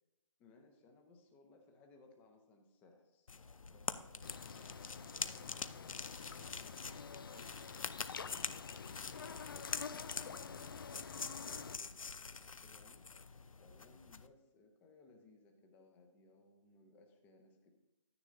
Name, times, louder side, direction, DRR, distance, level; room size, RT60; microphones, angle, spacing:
voice 1, 0.4-3.3 3.7-7.6 8.1-17.7, left 3 dB, 10° left, 3 dB, 0.9 m, -64 dB
sound 1, 3.3-14.3, left 5 dB, 75° left, 0.7 m, -45 dB
sound 2, 4.2-11.8, left 6 dB, 40° left, 0.5 m, -48 dB
11.5 x 9.9 x 2.6 m, 0.97 s
figure-of-eight pair, 155°, 17 cm